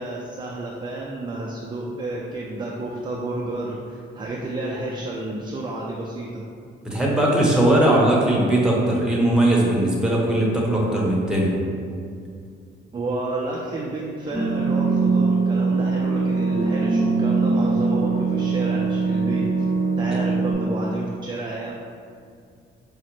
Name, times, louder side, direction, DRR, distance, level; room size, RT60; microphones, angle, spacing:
voice 1, 0.0-6.4 12.9-19.5 20.0-21.7, right 2 dB, 25° right, -3 dB, 0.4 m, -30 dB
voice 2, 6.8-11.5, right 1 dB, 5° right, -4 dB, 0.8 m, -19 dB
sound 1, 14.3-20.5, right 4 dB, 60° left, 1.0 m, -22 dB
4.8 x 2.1 x 3.0 m, 2.3 s
cardioid pair, 90°, 20 cm